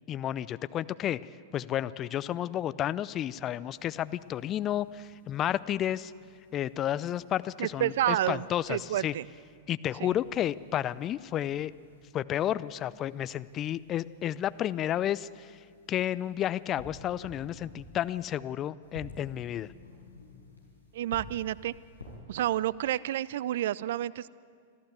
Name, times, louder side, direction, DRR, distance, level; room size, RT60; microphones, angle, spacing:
voice 1, 0.1-1.2 1.5-6.1 6.5-9.1 9.7-11.7 12.1-15.5 15.9-19.7, left 11 dB, 30° left, 16 dB, 0.5 m, -31 dB
sound 1, 3.7-5.6 6.1-9.6 10.0-12.1 12.6-18.3 18.8-22.2, left 2 dB, 85° left, 5.0 m, -53 dB
voice 2, 7.6-9.3 10.0-10.1 20.9-21.7 22.3-24.3, right 13 dB, 55° right, 22 dB, 0.4 m, -30 dB
26.0 x 14.5 x 8.2 m, 2.1 s
figure-of-eight pair, 95°, 0 cm